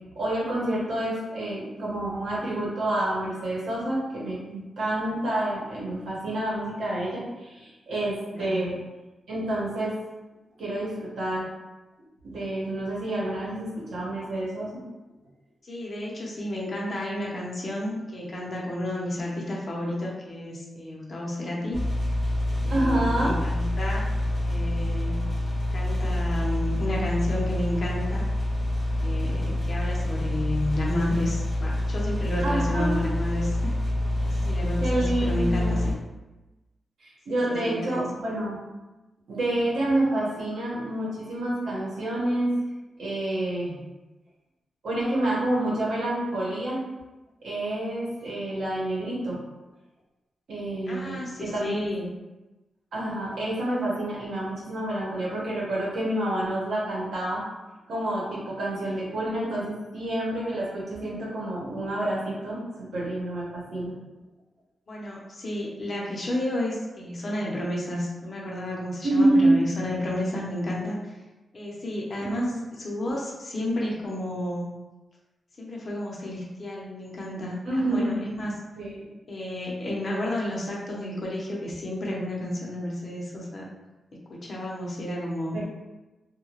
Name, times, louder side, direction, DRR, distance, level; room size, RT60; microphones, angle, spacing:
voice 1, 0.2-8.8 9.3-10.0 10.6-11.5 12.2-14.8 22.7-23.4 32.4-33.0 34.8-35.9 37.0-38.6 39.3-42.5 43.0-43.8 44.8-46.8 47.4-49.4 50.5-51.9 52.9-57.5 57.9-63.9 69.0-69.6 72.2-72.6 77.6-78.2 78.7-79.1 85.5-85.6, right 1 dB, 90° right, -6 dB, 1.0 m, -28 dB
voice 2, 8.3-8.6 15.6-21.8 22.6-24.1 24.4-25.2 25.7-28.2 29.0-33.8 34.2-35.9 37.3-38.1 48.2-48.3 50.9-52.1 58.9-59.0 64.9-71.1 71.5-74.8 75.6-78.5 79.3-83.7 84.3-85.6, left 1 dB, 40° left, -4 dB, 0.7 m, -31 dB
sound 1, 21.7-35.9, left 1 dB, 10° right, 0.9 m, -27 dB
2.7 x 2.2 x 2.9 m, 1.1 s
wide cardioid pair, 140°, 0 cm